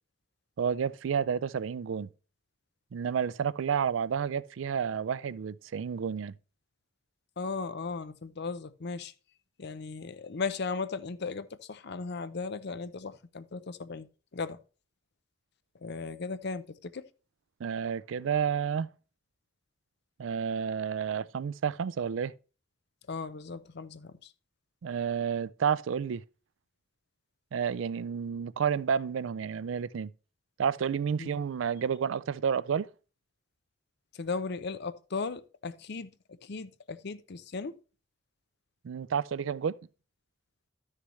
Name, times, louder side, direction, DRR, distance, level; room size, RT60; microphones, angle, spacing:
voice 1, 0.6-2.1 2.9-6.3 17.6-18.9 20.2-22.3 24.8-26.2 27.5-30.1 30.6-32.9 38.8-39.8, right 7 dB, 85° right, 0.4 m, -30 dB
voice 2, 7.4-9.1 9.6-14.1 14.3-14.6 15.8-17.1 23.1-24.3 31.2-31.4 34.1-36.1 36.4-37.8, left 4 dB, 60° left, 0.6 m, -36 dB
12.5 x 6.5 x 3.2 m
head